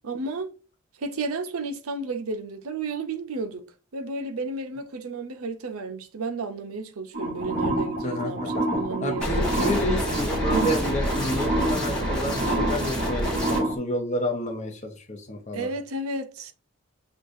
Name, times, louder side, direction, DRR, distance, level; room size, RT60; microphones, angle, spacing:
voice 1, 0.0-0.5 1.0-3.6 3.9-9.3 10.5-10.8 15.5-16.5, right 3 dB, 80° right, 0.6 m, -32 dB
sound 1, 7.1-13.7, right 1 dB, 45° right, 1.6 m, -28 dB
voice 2, 8.0-8.6 9.0-15.7, left 1 dB, 30° left, 0.8 m, -30 dB
sound 2, 9.2-13.6, equal, 5° left, 1.2 m, -28 dB
6.3 x 2.3 x 2.6 m
head